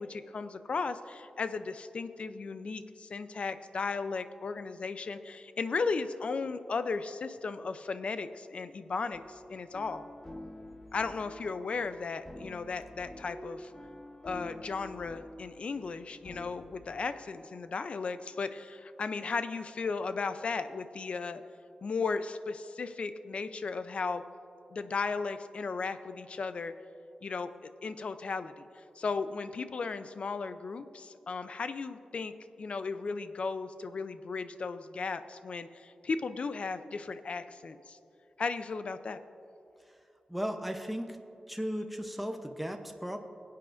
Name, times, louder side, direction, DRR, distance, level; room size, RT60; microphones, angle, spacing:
voice 1, 0.0-10.1 10.9-13.7 14.2-21.4 21.8-24.2 24.7-26.7 27.2-27.5 27.8-38.0 38.4-39.2, left 4 dB, 60° left, 11 dB, 0.5 m, -35 dB
sound 1, 9.1-16.9, left 1 dB, 25° left, 1.1 m, -48 dB
voice 2, 40.3-41.2 41.5-43.2, equal, ahead, 4 dB, 0.7 m, -36 dB
20.5 x 8.4 x 2.6 m, 2.7 s
cardioid pair, 75°, 2 cm